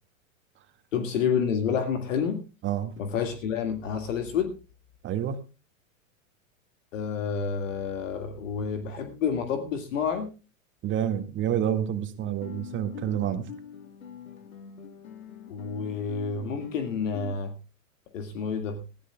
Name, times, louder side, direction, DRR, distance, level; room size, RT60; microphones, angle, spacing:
voice 1, 0.9-2.4 3.0-4.5 6.9-10.3 15.5-17.5 18.1-18.8, left 6 dB, 65° left, 6 dB, 2.0 m, -29 dB
voice 2, 5.0-5.4 10.8-13.5, right 10 dB, 30° right, 7 dB, 1.9 m, -28 dB
Guitar, 12.2-17.3, left 6 dB, 85° left, 1.6 m, -44 dB
21.0 x 15.0 x 2.3 m, 0.30 s
hypercardioid pair, 105°, 41 cm